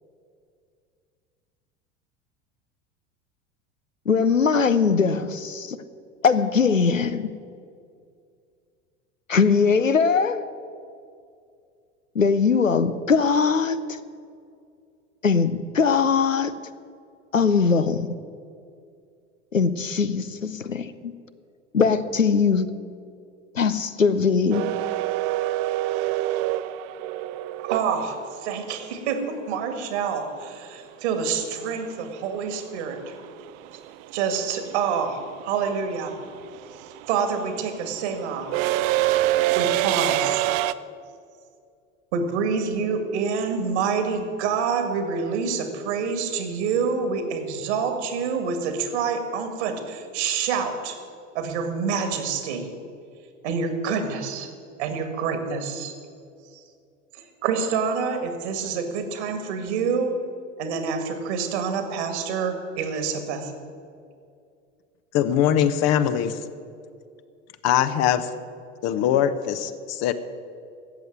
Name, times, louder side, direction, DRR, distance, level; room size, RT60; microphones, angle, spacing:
voice 1, 4.1-5.8 6.2-7.3 9.3-10.5 12.1-13.8 15.2-16.5 17.3-18.1 19.5-21.1 21.7-22.7 23.5-24.7, left 5 dB, 90° left, 0.7 m, -21 dB
sound 1, 24.5-28.6 31.0-31.1 32.4-32.7 32.9-40.7, right 15 dB, 40° right, 0.5 m, -25 dB
voice 2, 27.6-33.1 34.1-36.1 37.1-38.5 39.5-40.5 42.1-51.0 51.3-52.7 53.4-54.5 54.8-55.9 57.1-60.2 60.6-63.5, right 5 dB, 60° right, 2.0 m, -27 dB
voice 3, 65.1-66.4 67.6-68.3 68.8-70.1, left 10 dB, 40° left, 0.9 m, -22 dB
13.5 x 8.1 x 9.4 m
figure-of-eight pair, 75°, 38 cm